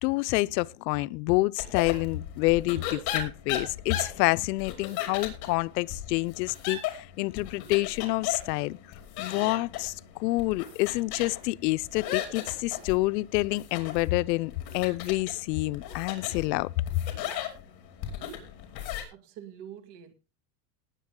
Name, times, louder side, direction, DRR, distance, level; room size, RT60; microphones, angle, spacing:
voice 1, 0.0-8.8 9.2-9.9 10.2-16.7, left 21 dB, 85° left, 0.7 m, -28 dB
sound 1, 1.6-19.0, left 10 dB, 50° left, 4.6 m, -37 dB
voice 2, 19.1-20.1, right 10 dB, 55° right, 2.6 m, -45 dB
19.5 x 8.1 x 3.7 m
supercardioid pair, 150°, 48 cm